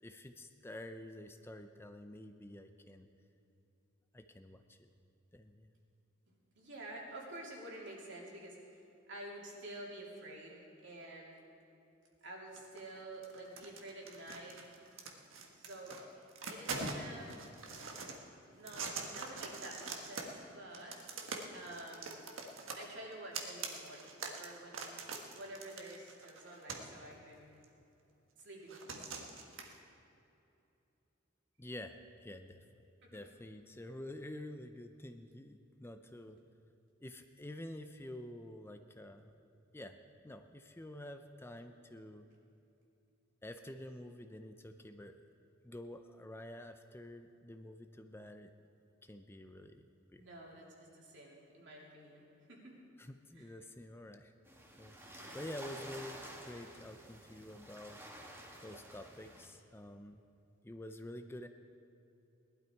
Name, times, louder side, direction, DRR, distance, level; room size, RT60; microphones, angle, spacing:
voice 1, 0.0-3.1 4.1-4.9 5.3-5.7 31.6-32.6 33.1-36.4 37.0-39.3 39.7-40.0 40.2-42.3 43.4-45.2 45.6-48.5 49.0-50.3 53.0-54.3 54.8-55.0 55.3-58.0 58.6-60.2 60.6-61.5, left 1 dB, 10° left, 7 dB, 0.5 m, -49 dB
voice 2, 6.6-8.8 9.1-11.4 12.2-14.7 15.6-16.1 16.5-17.3 18.5-21.0 21.5-22.2 22.8-24.9 25.3-27.5 28.4-28.9 33.0-33.2 50.2-52.2 52.5-52.8 53.3-53.5 55.2-55.4, right 1 dB, 65° right, -3 dB, 3.1 m, -49 dB
sound 1, 12.6-13.0 13.2-16.0 16.3-18.2 18.6-20.4 20.7-27.0 27.6-27.7 28.7-29.8, right 4 dB, 80° right, 1.5 m, -44 dB
sound 2, 54.5-59.5, right 1 dB, 10° right, 1.7 m, -51 dB
19.0 x 12.0 x 4.6 m, 2.8 s
head